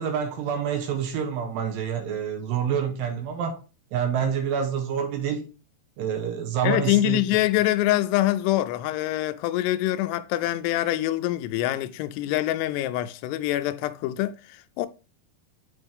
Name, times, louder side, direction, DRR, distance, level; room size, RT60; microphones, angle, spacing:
voice 1, 0.0-3.6 3.9-5.5 6.0-7.2, right 7 dB, 75° right, 2.3 m, -27 dB
voice 2, 6.6-14.9, left 15 dB, 85° left, 2.6 m, -25 dB
7.8 x 4.6 x 3.5 m
omnidirectional pair, 4.8 m